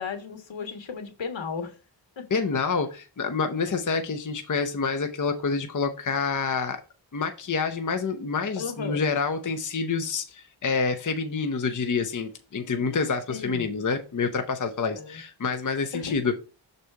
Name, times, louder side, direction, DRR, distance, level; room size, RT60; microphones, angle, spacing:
voice 1, 0.0-1.7 2.2-2.4 8.5-9.0 13.3-13.7 14.9-15.2 15.9-16.3, left 5 dB, 80° left, 1.5 m, -35 dB
voice 2, 2.3-6.8 7.1-16.4, left 5 dB, 40° left, 0.8 m, -27 dB
6.4 x 4.2 x 4.6 m
wide cardioid pair, 100°, 45 cm